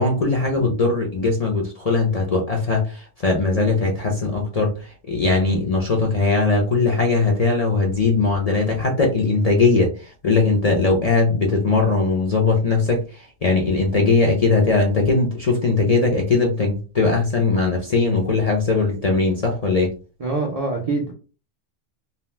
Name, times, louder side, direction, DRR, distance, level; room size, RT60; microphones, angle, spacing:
voice 1, 0.0-4.7 5.1-9.9 10.2-13.0 13.4-19.9, left 3 dB, 45° left, 0 dB, 0.5 m, -19 dB
voice 2, 20.2-21.1, right 3 dB, 50° right, -1 dB, 0.4 m, -24 dB
2.7 x 2.0 x 3.1 m, 0.34 s
omnidirectional pair, 1.3 m